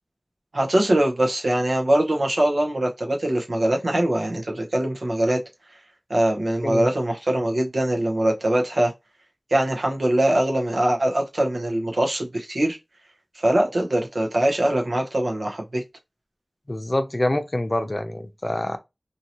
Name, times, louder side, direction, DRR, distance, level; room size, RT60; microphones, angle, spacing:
voice 1, 0.5-5.4 6.1-8.9 9.5-12.8 13.4-15.8, right 1 dB, 85° right, 0.9 m, -22 dB
voice 2, 16.7-18.8, left 1 dB, 40° left, 0.6 m, -25 dB
2.8 x 2.8 x 2.9 m
wide cardioid pair, 40°, 0 cm